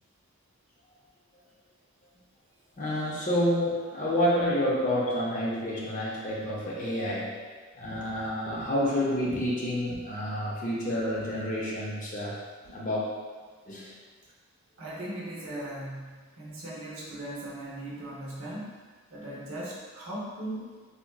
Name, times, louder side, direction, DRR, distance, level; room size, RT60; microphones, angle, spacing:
voice 1, 2.8-7.4 7.7-12.4 12.6-13.0 13.7-13.9, equal, 35° left, -5 dB, 0.5 m, -29 dB
voice 2, 14.8-18.8 19.1-20.7, right 1 dB, 65° right, -5 dB, 0.7 m, -38 dB
3.7 x 2.1 x 2.2 m, 1.5 s
head